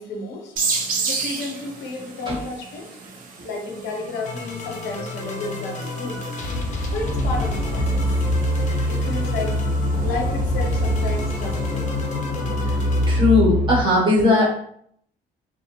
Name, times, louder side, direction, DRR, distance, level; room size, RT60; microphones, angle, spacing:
voice 1, 0.0-2.9 3.4-6.2 6.9-8.1 8.9-9.6 10.0-11.9, left 3 dB, 85° left, 1 dB, 0.7 m, -32 dB
sound 1, 0.6-11.9, right 4 dB, 50° right, 0.6 m, -34 dB
sound 2, 3.8-13.2, left 2 dB, 45° left, 0.6 m, -30 dB
sound 3, 7.0-13.8, left 1 dB, 5° left, 0.9 m, -23 dB
voice 2, 13.1-14.5, left 2 dB, 30° right, -3 dB, 0.9 m, -18 dB
2.5 x 2.0 x 2.9 m, 0.66 s
cardioid pair, 110°, 17 cm